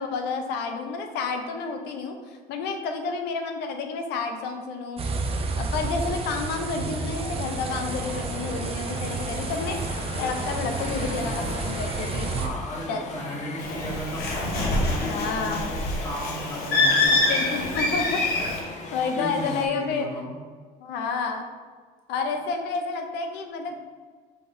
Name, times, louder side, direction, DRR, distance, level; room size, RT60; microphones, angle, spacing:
voice 1, 0.0-5.0 5.6-9.8 10.2-12.3 12.9-13.0 15.0-15.7 17.3-18.2 18.9-20.1 20.8-21.5 22.1-23.7, left 4 dB, 90° left, 5 dB, 0.6 m, -30 dB
sound 1, 5.0-12.5, right 3 dB, 35° right, 0.5 m, -31 dB
voice 2, 6.7-7.0 12.4-17.4 19.2-20.3, equal, 25° left, -5 dB, 1.4 m, -35 dB
sound 2, 7.2-19.7, left 3 dB, 45° left, 0.5 m, -39 dB
Bird, 13.6-18.6, left 2 dB, 70° left, 1.0 m, -25 dB
5.6 x 3.4 x 2.6 m, 1.6 s
cardioid pair, 110°, 17 cm